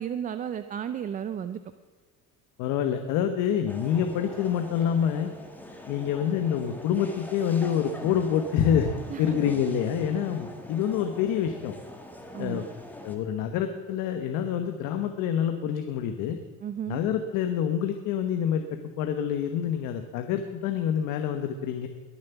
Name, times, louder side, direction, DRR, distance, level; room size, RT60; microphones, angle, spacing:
voice 1, 0.0-1.6 9.1-9.4 12.3-12.7 16.6-17.0, right 9 dB, 25° right, 11 dB, 0.4 m, -33 dB
voice 2, 2.6-5.3 5.9-11.8 12.4-12.6 13.0-16.4 16.9-21.9, left 8 dB, 70° left, 7 dB, 1.2 m, -27 dB
sound 1, 3.7-13.2, left 1 dB, 5° left, 1.6 m, -43 dB
21.5 x 7.4 x 7.0 m, 1.4 s
cardioid pair, 160°, 32 cm